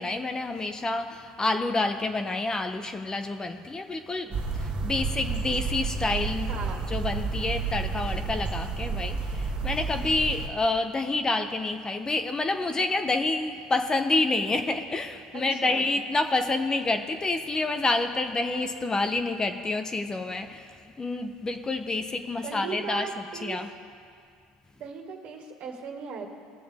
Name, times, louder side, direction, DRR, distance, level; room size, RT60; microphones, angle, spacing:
voice 1, 0.0-6.6 6.9-23.1 23.4-23.7, left 2 dB, 20° left, 7 dB, 0.8 m, -28 dB
sound 1, 4.3-10.5, right 4 dB, 40° right, 1.7 m, -31 dB
voice 2, 6.5-6.9 15.3-15.8 22.4-23.6 24.8-26.3, right 5 dB, 55° right, 2 dB, 1.8 m, -37 dB
20.0 x 6.9 x 3.6 m, 2.2 s
supercardioid pair, 85°, 3 cm